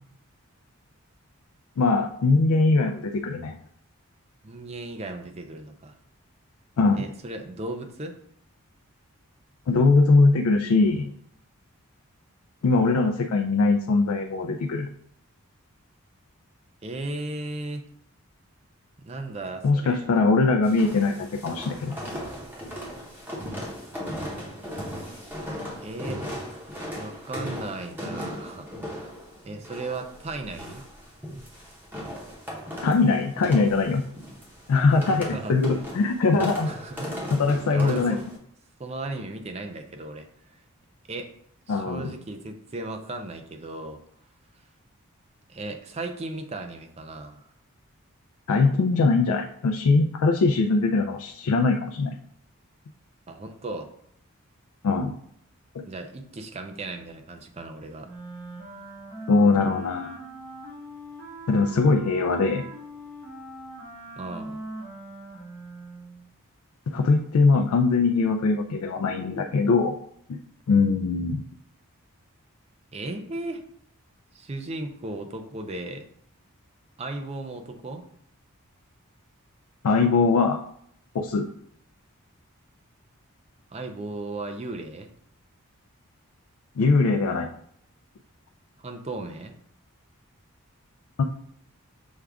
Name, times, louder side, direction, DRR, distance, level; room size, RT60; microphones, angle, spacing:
voice 1, 1.8-3.5 6.8-7.0 9.7-11.1 12.6-14.9 19.6-22.0 32.8-34.0 34.7-36.7 37.3-38.2 41.7-42.1 48.5-52.1 54.8-55.1 55.8-55.9 59.3-60.2 61.5-62.6 66.9-69.9 70.3-70.4 70.7-71.4 79.8-80.6 81.1-81.5 86.8-87.5 91.2-91.3, left 3 dB, 75° left, 3 dB, 0.4 m, -21 dB
voice 2, 4.4-6.0 6.9-8.2 16.8-17.9 19.0-20.1 25.8-26.2 26.7-29.1 29.4-30.9 35.2-35.6 36.5-37.1 37.7-38.3 38.8-40.3 40.5-40.6 41.1-41.3 41.7-44.0 45.5-47.4 53.3-53.9 55.9-58.1 64.2-64.6 72.9-73.6 74.3-76.1 77.0-78.1 83.7-85.1 88.8-89.5, right 2 dB, 30° right, 5 dB, 0.4 m, -36 dB
sound 1, 20.6-38.4, equal, 10° right, 0.8 m, -37 dB
Wind instrument woodwind instrument, 58.0-66.3, right 1 dB, 80° right, 1.6 m, -40 dB
6.3 x 2.3 x 3.4 m, 0.70 s
head